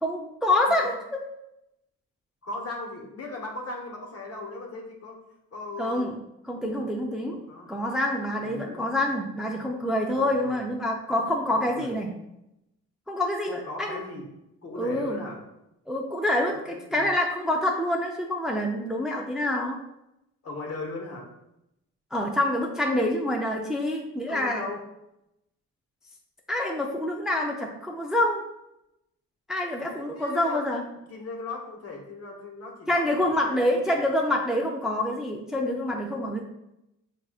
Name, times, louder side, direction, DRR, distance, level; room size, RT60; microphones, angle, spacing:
voice 1, 0.0-1.2 5.8-6.1 6.5-7.4 7.7-12.1 13.1-14.0 14.8-15.2 15.9-19.8 22.1-24.6 26.5-28.4 29.5-30.9 32.9-36.4, left 1 dB, ahead, 1 dB, 0.4 m, -26 dB
voice 2, 0.7-1.0 2.4-5.2 5.5-6.2 6.6-6.8 7.2-7.8 8.4-9.1 10.1-10.6 11.5-12.0 13.4-14.3 14.6-15.4 16.5-17.1 20.4-21.3 24.3-24.8 30.0-30.7 31.1-33.8, left 2 dB, 55° left, 0 dB, 1.2 m, -38 dB
6.1 x 2.6 x 2.4 m, 0.86 s
cardioid pair, 90°, 30 cm